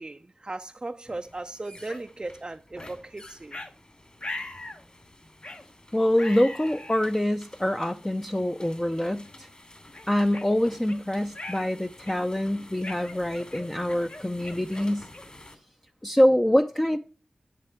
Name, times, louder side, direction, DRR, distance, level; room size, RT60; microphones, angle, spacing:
voice 1, 0.0-3.6, right 2 dB, 35° right, 0.4 m, -37 dB
sound 1, 1.0-15.6, left 1 dB, 40° left, 2.7 m, -51 dB
sound 2, 1.9-2.0 2.8-3.0 3.5-3.7 4.2-4.8 5.4-5.7 6.1-7.1 7.8-7.9 8.6-8.8 9.2-9.4 9.9-11.0 11.3-11.7 12.0-12.4 12.8-15.4, left 2 dB, 60° left, 1.6 m, -40 dB
voice 2, 5.9-9.5 10.1-15.1 16.0-17.0, left 1 dB, 15° left, 0.5 m, -25 dB
11.0 x 7.5 x 4.4 m
cardioid pair, 50°, 3 cm